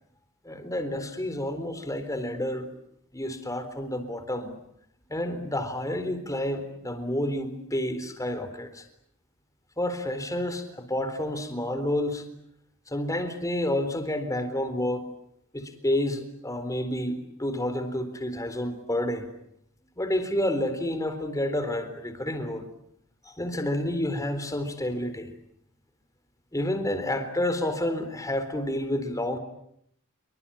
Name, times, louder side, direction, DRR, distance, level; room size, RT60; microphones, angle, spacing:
voice 1, 0.4-2.7 3.1-4.5 5.1-8.8 9.8-12.2 12.9-15.0 15.5-19.3 20.0-22.7 23.2-25.3 26.5-29.4, left 1 dB, 15° left, 9 dB, 4.0 m, -29 dB
27.0 x 24.5 x 8.8 m, 0.72 s
head